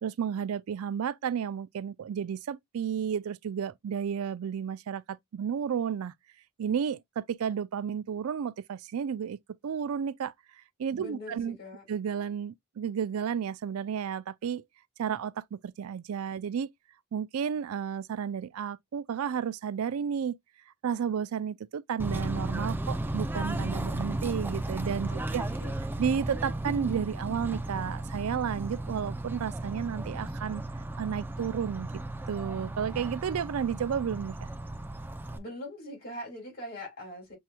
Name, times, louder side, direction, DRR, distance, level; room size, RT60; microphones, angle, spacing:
voice 1, 0.0-6.1 6.6-9.4 9.6-10.3 10.8-11.6 11.9-14.6 15.0-16.7 17.1-20.4 20.8-25.4 26.0-30.6 31.0-31.9 32.3-34.4, right 7 dB, 80° right, 0.4 m, -32 dB
voice 2, 10.9-11.8 25.1-25.8 35.3-37.3, left 1 dB, 45° left, 3.5 m, -42 dB
Bird / Train, 22.0-35.4, right 1 dB, 10° right, 0.4 m, -34 dB
6.3 x 2.9 x 2.3 m
head